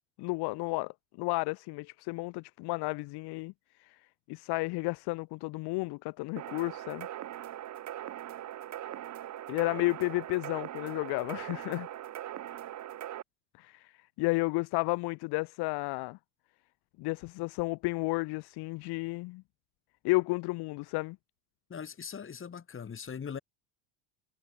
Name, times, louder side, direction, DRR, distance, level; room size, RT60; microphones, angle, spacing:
voice 1, 0.2-3.5 3.8-4.0 4.3-7.1 9.5-11.9 13.6-13.9 14.2-16.2 17.0-19.4 20.0-21.2, left 24 dB, 55° left, 0.7 m, -32 dB
sound 1, 6.4-13.2, right 12 dB, 35° right, 1.4 m, -41 dB
voice 2, 21.7-23.4, left 7 dB, 25° left, 5.1 m, -40 dB
cardioid pair, 135°, 48 cm